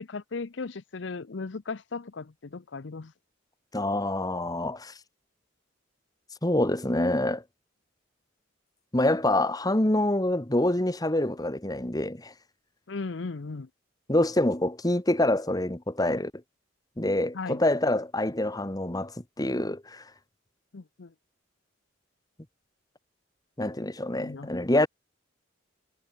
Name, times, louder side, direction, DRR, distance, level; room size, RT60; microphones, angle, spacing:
voice 1, 0.0-3.1 12.9-13.7 17.3-17.6 20.7-21.1 24.1-24.5, left 4 dB, 65° left, 0.7 m, -36 dB
voice 2, 3.7-4.9 6.4-7.4 8.9-12.3 14.1-16.3 17.0-20.0 23.6-24.9, left 1 dB, 20° left, 1.4 m, -26 dB
head